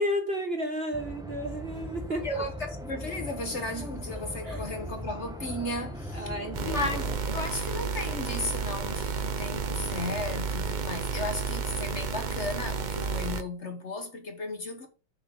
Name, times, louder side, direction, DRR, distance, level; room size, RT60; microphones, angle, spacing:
voice 1, 0.0-2.4 4.4-4.6 6.1-6.9 7.2-7.3, equal, 35° right, 1.3 m, -32 dB
sound 1, 0.9-7.2, equal, 5° right, 0.8 m, -39 dB
voice 2, 2.2-6.3 6.6-14.9, left 2 dB, 40° left, 1.7 m, -35 dB
sound 2, 6.5-13.4, right 5 dB, 65° right, 0.4 m, -31 dB
7.1 x 6.2 x 5.4 m
omnidirectional pair, 2.0 m